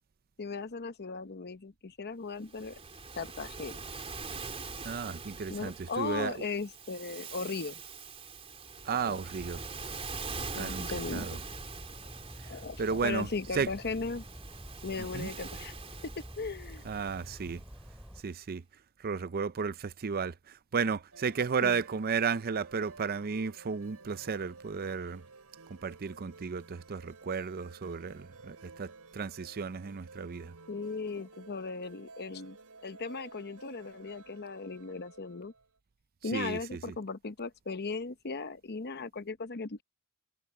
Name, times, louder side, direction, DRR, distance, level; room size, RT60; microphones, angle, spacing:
voice 1, 0.4-2.8 3.1-3.8 5.5-7.8 9.0-9.2 10.6-11.4 12.5-14.2 14.8-15.7 16.0-16.8 21.6-21.8 30.7-32.6 32.8-35.5 36.2-39.8, left 4 dB, 45° left, 0.9 m, -37 dB
Waves surf, 2.4-17.9, right 4 dB, 25° right, 3.5 m, -44 dB
voice 2, 4.8-6.4 8.8-9.6 10.5-11.4 12.4-13.3 13.5-13.7 15.1-15.3 16.8-17.6 18.2-18.6 19.0-25.2 25.7-30.5 36.3-36.9, right 5 dB, 45° right, 0.5 m, -34 dB
sound 1, 9.4-18.2, equal, ahead, 4.8 m, -48 dB
sound 2, 21.1-35.7, right 3 dB, 90° right, 4.0 m, -54 dB
head